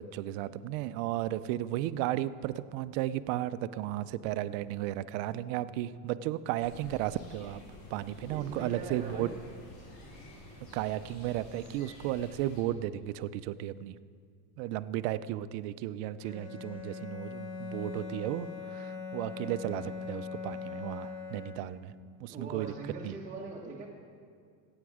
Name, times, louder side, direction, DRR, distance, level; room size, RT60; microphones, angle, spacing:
voice 1, 0.0-7.6 7.9-9.3 10.7-13.9 14.6-21.9 22.2-22.7 23.0-23.1, right 13 dB, 65° right, 14 dB, 0.6 m, -34 dB
sound 1, 6.6-12.6, left 1 dB, 50° left, 3.7 m, -50 dB
voice 2, 8.3-9.3 22.3-23.9, right 3 dB, 20° right, -4 dB, 1.2 m, -41 dB
Bowed string instrument, 16.2-22.0, left 4 dB, 80° left, 2.2 m, -41 dB
15.5 x 8.9 x 4.9 m, 2.2 s
supercardioid pair, 130°, 42 cm